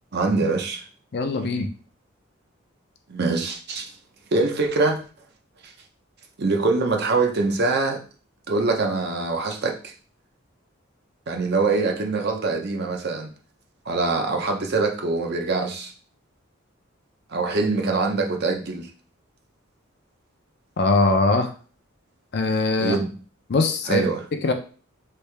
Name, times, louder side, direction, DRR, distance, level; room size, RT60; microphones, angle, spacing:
voice 1, 0.1-0.8 3.1-3.9 4.3-5.0 5.6-5.7 6.4-8.0 8.5-9.9 11.3-13.3 13.9-15.9 17.3-18.9 22.8-23.1 23.9-24.2, right 3 dB, 55° right, 2 dB, 0.6 m, -24 dB
voice 2, 1.1-1.7 20.8-21.5 22.3-23.0 23.5-24.0 24.4-24.5, left 3 dB, 55° left, 6 dB, 0.5 m, -21 dB
3.3 x 2.7 x 3.3 m, 0.37 s
head